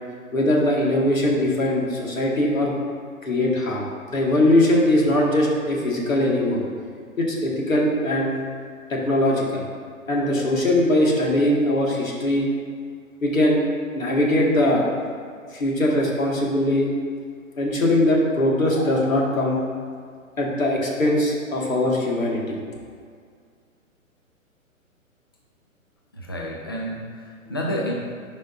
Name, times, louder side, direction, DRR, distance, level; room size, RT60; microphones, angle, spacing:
voice 1, 0.3-2.7 3.2-6.6 7.2-8.3 8.9-9.6 10.1-12.5 13.2-13.6 13.9-14.9 15.5-16.9 17.6-19.6 20.4-22.6, left 1 dB, 70° left, -3 dB, 1.7 m, -21 dB
voice 2, 26.1-27.9, equal, 20° left, -2 dB, 0.4 m, -30 dB
11.5 x 5.1 x 2.5 m, 2.1 s
figure-of-eight pair, 125°, 41 cm